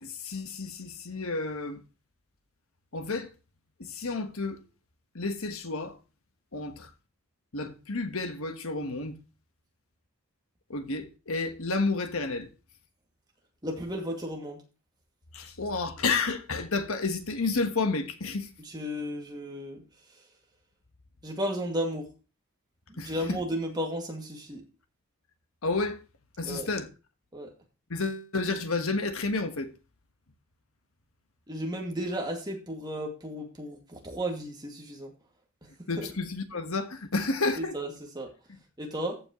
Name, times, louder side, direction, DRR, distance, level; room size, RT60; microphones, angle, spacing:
voice 1, 0.0-1.8 2.9-3.3 3.8-4.6 5.1-6.0 6.5-6.9 7.5-9.2 10.7-12.5 15.3-18.5 23.0-23.4 25.6-26.0 26.4-26.9 27.9-29.7 35.9-37.7, left 3 dB, 75° left, 1.4 m, -31 dB
voice 2, 13.6-14.6 18.6-19.8 21.2-22.0 22.9-24.6 26.4-26.7 27.3-27.5 31.5-35.1 36.0-36.1 37.6-38.3 38.8-39.2, equal, 20° right, 2.3 m, -34 dB
14.5 x 6.2 x 3.1 m
head